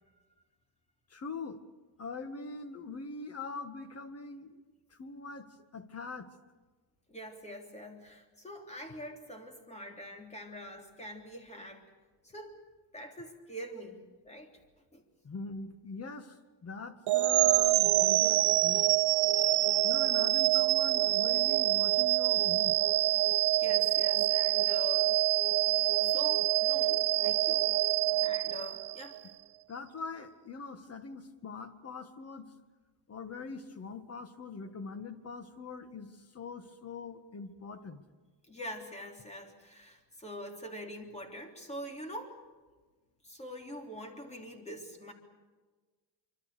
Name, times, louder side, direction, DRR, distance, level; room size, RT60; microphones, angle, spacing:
voice 1, 1.1-1.6 2.0-4.6 4.9-5.5 5.7-6.3 15.2-16.4 16.6-18.9 19.8-22.8 29.7-32.5 33.1-36.1 36.3-38.0, left 4 dB, 35° left, 9 dB, 1.8 m, -42 dB
voice 2, 7.1-11.8 12.2-12.6 12.9-14.5 14.9-15.0 23.5-25.1 26.0-28.0 28.2-29.2 38.5-42.4 43.2-45.1, equal, 15° left, 3 dB, 3.5 m, -44 dB
sound 1, 17.1-29.2, right 16 dB, 60° right, 0.7 m, -26 dB
25.5 x 25.0 x 6.8 m, 1.3 s
cardioid pair, 160°, 44 cm